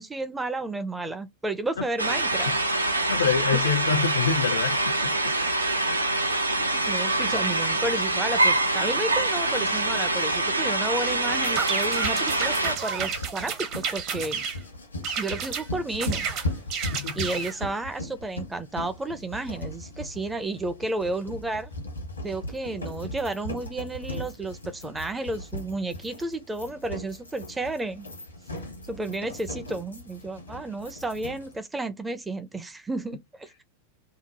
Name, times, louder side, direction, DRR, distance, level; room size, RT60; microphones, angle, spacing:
voice 1, 0.0-2.5 3.5-3.6 6.7-14.4 15.2-16.3 17.2-21.7 22.2-28.1 28.9-33.6, right 2 dB, 10° right, 0.4 m, -32 dB
sound 1, 2.0-12.8, right 2 dB, 80° right, 0.5 m, -25 dB
voice 2, 2.9-5.3 16.9-17.2 28.5-28.6, left 6 dB, 65° left, 0.4 m, -27 dB
sound 2, 11.4-14.6 15.0-15.7 16.0-17.6, right 7 dB, 40° right, 0.7 m, -31 dB
sound 3, 11.8-31.6, left 1 dB, 80° left, 0.9 m, -38 dB
2.8 x 2.0 x 3.9 m
figure-of-eight pair, 90°, 0 cm